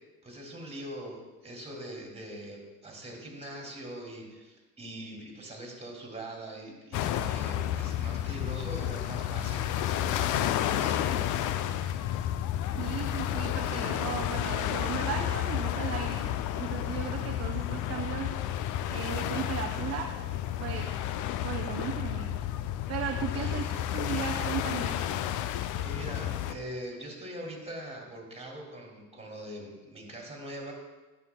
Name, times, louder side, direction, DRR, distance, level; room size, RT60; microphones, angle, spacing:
voice 1, 0.2-11.4 23.3-23.6 25.8-30.7, right 1 dB, 15° right, -1 dB, 2.5 m, -42 dB
sound 1, 6.9-26.5, left 11 dB, 45° left, 0.5 m, -31 dB
voice 2, 12.8-18.3 18.9-20.1 20.6-20.9 21.4-22.3 22.9-25.0, right 8 dB, 35° right, 4 dB, 0.6 m, -36 dB
11.0 x 6.9 x 2.2 m, 1.2 s
hypercardioid pair, 70°, 44 cm